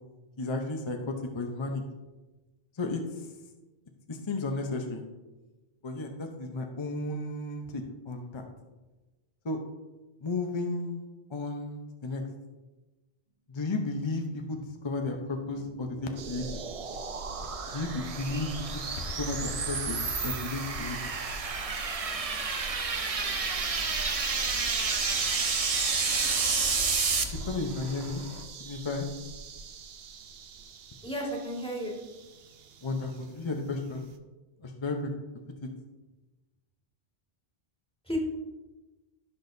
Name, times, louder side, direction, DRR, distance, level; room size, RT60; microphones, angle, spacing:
voice 1, 0.4-1.8 2.8-3.3 4.1-5.0 5.8-8.4 9.4-9.6 10.2-11.0 11.3-12.2 13.5-16.4 17.7-21.0 27.5-28.2 28.6-29.1 32.8-34.0 34.6-35.1 35.6-35.7, left 2 dB, 30° left, 3 dB, 0.8 m, -33 dB
sound 1, 15.6-27.2, right 4 dB, 40° right, 0.7 m, -31 dB
sound 2, 16.2-34.2, right 5 dB, 75° right, 0.9 m, -44 dB
Fixed-wing aircraft airplane, 17.4-28.4, left 3 dB, 85° left, 1.1 m, -44 dB
voice 2, 31.0-32.0 38.0-38.2, right 1 dB, 5° left, -3 dB, 1.9 m, -33 dB
15.5 x 6.3 x 2.7 m, 1.2 s
omnidirectional pair, 1.0 m